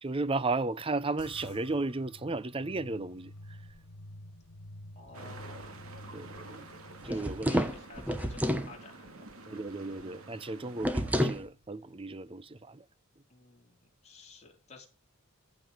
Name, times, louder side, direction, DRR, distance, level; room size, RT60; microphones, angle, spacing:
voice 1, 0.0-3.3 6.1-6.6 7.0-7.5 9.5-12.8, right 3 dB, 25° right, 0.6 m, -34 dB
sound 1, 1.2-11.8, left 1 dB, 85° left, 1.3 m, -51 dB
voice 2, 5.0-5.9 7.0-9.3 13.3-14.9, left 3 dB, 30° left, 3.9 m, -52 dB
sound 2, 5.1-11.4, right 3 dB, 70° right, 2.1 m, -49 dB
sound 3, 7.0-8.7 10.8-11.4, equal, 5° right, 1.0 m, -29 dB
15.0 x 5.3 x 8.9 m
head